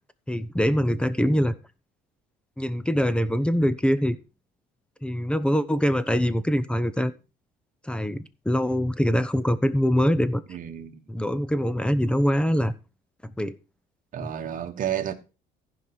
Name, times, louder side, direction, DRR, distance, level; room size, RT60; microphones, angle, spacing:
voice 1, 0.3-1.5 2.6-4.2 5.0-7.1 7.8-10.4 11.1-12.7 13.2-13.6 14.2-14.3, equal, 5° left, 0.8 m, -23 dB
voice 2, 10.5-11.0 14.1-15.1, right 10 dB, 50° right, 1.4 m, -31 dB
15.0 x 5.3 x 4.5 m
cardioid pair, 110°, 17 cm